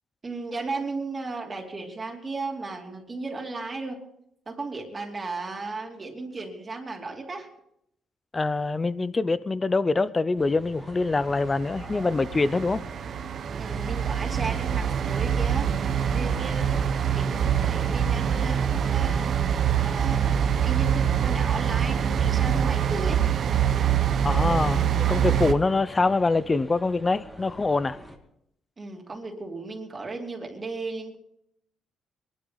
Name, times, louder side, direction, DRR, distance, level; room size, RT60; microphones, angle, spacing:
voice 1, 0.2-4.0 4.5-7.5 13.6-19.3 19.8-23.2 28.8-31.2, right 3 dB, 30° right, 2.8 m, -35 dB
voice 2, 8.3-12.8 24.2-28.0, left 3 dB, 25° left, 0.7 m, -24 dB
sound 1, 10.4-28.2, equal, 5° left, 2.3 m, -47 dB
sound 2, 11.3-25.5, right 8 dB, 60° right, 1.0 m, -25 dB
22.5 x 12.0 x 4.1 m
cardioid pair, 90°, 0 cm